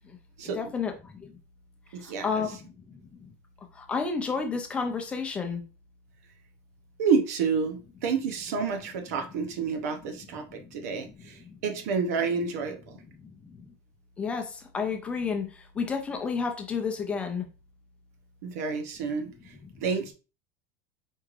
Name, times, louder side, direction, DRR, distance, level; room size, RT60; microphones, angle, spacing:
voice 1, 0.5-1.3 2.0-3.3 3.7-5.6 10.4-11.6 13.0-13.7 14.2-17.5 19.6-19.8, left 5 dB, 15° left, 4 dB, 0.4 m, -32 dB
voice 2, 1.9-2.4 7.0-10.4 10.7-12.8 18.4-19.3 19.8-20.1, right 5 dB, 85° right, 5 dB, 0.8 m, -29 dB
4.4 x 3.2 x 2.4 m, 0.33 s
cardioid pair, 175°, 8 cm